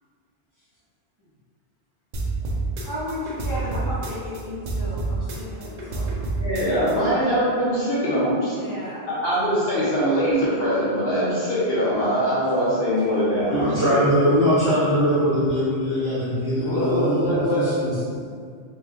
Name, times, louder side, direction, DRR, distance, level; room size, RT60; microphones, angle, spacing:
sound 1, 2.1-4.4 4.7-6.9, right 3 dB, 55° right, 0.5 m, -28 dB
voice 1, 2.8-6.1 8.5-9.1, left 1 dB, 30° left, -14 dB, 1.7 m, -34 dB
voice 2, 6.4-8.5 9.1-14.0 16.6-17.7, equal, 65° left, -9 dB, 1.0 m, -22 dB
voice 3, 13.5-18.2, equal, 20° right, -14 dB, 1.0 m, -22 dB
3.2 x 3.1 x 2.4 m, 2.1 s
omnidirectional pair, 1.1 m